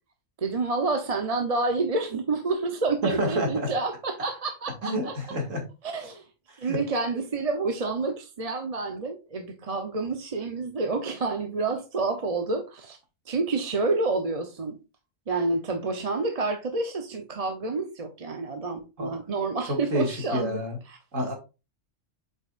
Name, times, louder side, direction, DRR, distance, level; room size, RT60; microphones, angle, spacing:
voice 1, 0.4-5.1 5.8-6.2 6.6-13.0 13.3-14.8 15.3-20.6 20.9-21.0, right 3 dB, 35° right, 0.7 m, -28 dB
voice 2, 3.0-3.7 4.8-5.6 6.6-6.8 19.0-19.1 19.7-20.8 21.1-21.3, equal, 90° right, 2.5 m, -28 dB
7.9 x 5.4 x 2.4 m
omnidirectional pair, 1.3 m